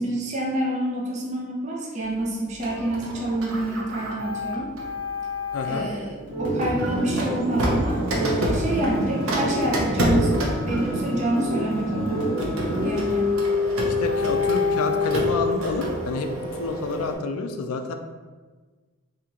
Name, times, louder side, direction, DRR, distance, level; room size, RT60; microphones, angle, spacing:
voice 1, 0.0-4.7 5.6-10.3 10.7-13.3, right 1 dB, 30° right, -2 dB, 0.5 m, -28 dB
Printer, 2.6-5.9 6.6-17.1, left 2 dB, 75° right, 0.6 m, -27 dB
voice 2, 5.5-5.9 13.8-16.3 16.6-17.9, left 4 dB, 80° left, 6 dB, 0.4 m, -28 dB
sound 1, 6.3-12.9, right 1 dB, 55° right, 1.3 m, -28 dB
2.9 x 2.8 x 3.7 m, 1.4 s
head